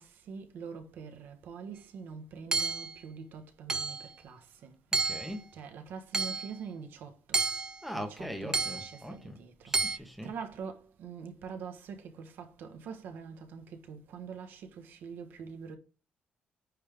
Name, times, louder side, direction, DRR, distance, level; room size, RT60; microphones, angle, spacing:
voice 1, 0.0-4.0 4.2-4.7 5.5-7.4 7.9-9.7 10.2-15.8, right 6 dB, 85° right, 1.2 m, -44 dB
Hammer / Chink clink, 2.5-3.0 3.7-4.1 4.9-5.4 6.1-6.5 7.3-7.8 8.5-8.9 9.7-10.0, right 4 dB, 20° right, 0.4 m, -30 dB
voice 2, 4.9-5.5 7.8-9.4 9.6-10.3, equal, ahead, 1.3 m, -41 dB
9.4 x 3.5 x 3.5 m
cardioid pair, 150°, 3 cm